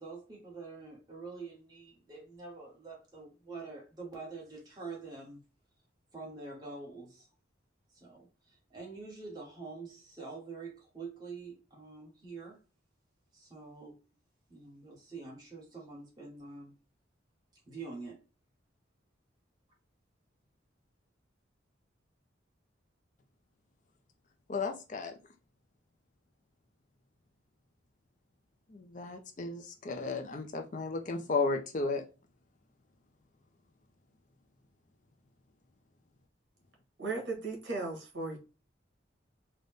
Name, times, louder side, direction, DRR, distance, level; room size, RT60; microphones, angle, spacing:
voice 1, 0.0-5.4 6.1-7.3 7.9-12.6 13.3-14.0 14.5-16.8 17.7-18.2, right 4 dB, 20° right, 1.3 m, -46 dB
voice 2, 24.5-25.1 28.7-32.0, left 3 dB, 40° left, 0.5 m, -34 dB
voice 3, 37.0-38.4, right 3 dB, 65° right, 1.7 m, -36 dB
3.9 x 2.2 x 3.4 m
head